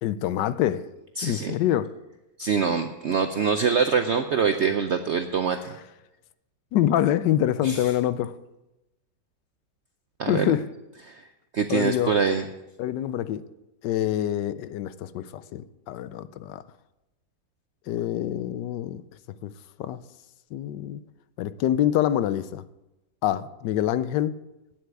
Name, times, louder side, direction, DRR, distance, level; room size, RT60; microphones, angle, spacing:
voice 1, 0.0-0.8 1.2-1.9 6.7-8.3 10.3-10.6 11.7-12.2 12.8-13.4 13.8-16.6 17.9-19.0 19.4-19.5 19.8-20.0 20.5-21.0 21.4-22.6 23.2-24.3, left 11 dB, 75° left, 15 dB, 1.2 m, -25 dB
voice 2, 1.2-1.5 2.4-5.7 7.6-7.8 10.2-10.5 11.1-11.2 11.5-12.4, right 6 dB, 70° right, 7 dB, 0.6 m, -24 dB
9.3 x 8.0 x 8.1 m, 0.97 s
omnidirectional pair, 1.9 m